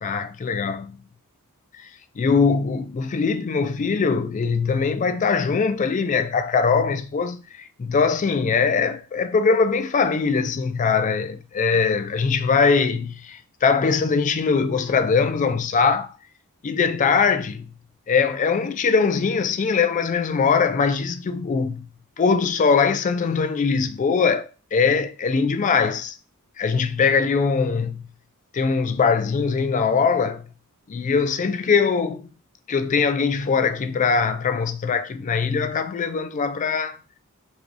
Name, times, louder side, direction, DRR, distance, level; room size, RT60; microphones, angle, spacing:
voice 1, 0.0-1.0 2.2-16.1 16.6-17.7 18.1-21.9 22.2-26.1 26.6-28.1 28.5-30.5 30.9-32.3 32.7-37.0, left 5 dB, 35° left, 0.3 m, -21 dB
3.4 x 3.4 x 2.5 m
head